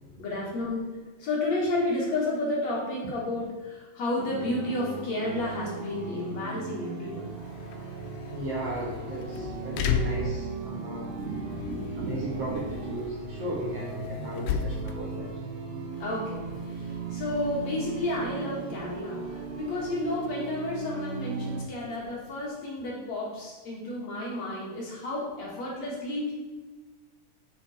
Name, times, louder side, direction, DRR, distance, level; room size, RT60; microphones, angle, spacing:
voice 1, 0.2-0.9 1.2-7.3 16.0-26.3, left 2 dB, 55° left, -4 dB, 2.7 m, -31 dB
sound 1, 4.2-21.7, right 4 dB, 75° right, 2.9 m, -37 dB
sound 2, 7.1-22.5, left 6 dB, 75° left, 2.2 m, -37 dB
voice 2, 8.3-15.3, right 1 dB, 50° right, -5 dB, 2.2 m, -35 dB
8.0 x 7.1 x 4.3 m, 1.3 s
omnidirectional pair, 4.2 m